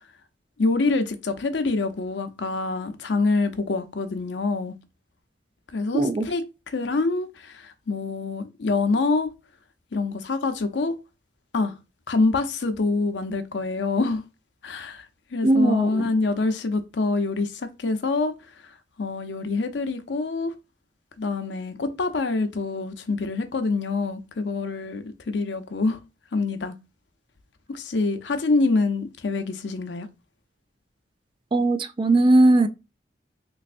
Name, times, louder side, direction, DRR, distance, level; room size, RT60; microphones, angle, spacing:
voice 1, 0.6-4.7 5.7-9.3 9.9-11.0 11.5-11.8 12.1-14.2 14.6-15.1 15.3-18.3 18.6-18.7 19.0-20.5 21.2-26.0 26.3-26.8 27.7-30.1, left 3 dB, 70° left, 0.6 m, -26 dB
voice 2, 5.9-6.2 15.4-16.1 31.5-32.7, right 2 dB, 25° right, 0.3 m, -19 dB
3.4 x 3.1 x 2.5 m
head